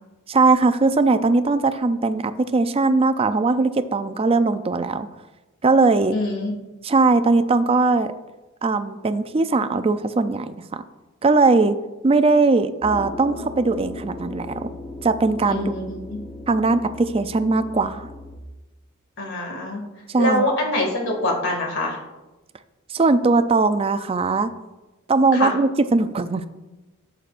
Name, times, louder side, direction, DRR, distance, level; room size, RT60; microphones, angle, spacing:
voice 1, 0.3-5.1 5.6-6.2 6.8-8.1 8.6-10.6 11.2-11.8 12.0-14.7 15.0-15.7 16.5-18.1 20.1-20.4 22.9-24.5 25.1-26.4, right 3 dB, 25° right, 10 dB, 0.4 m, -19 dB
voice 2, 6.1-6.6 15.5-16.2 19.2-19.8 20.2-22.0 25.3-25.5, left 1 dB, 60° left, 0 dB, 2.3 m, -24 dB
sound 1, 12.8-18.4, left 2 dB, 5° left, 1.0 m, -37 dB
13.0 x 8.1 x 2.5 m, 1.1 s
head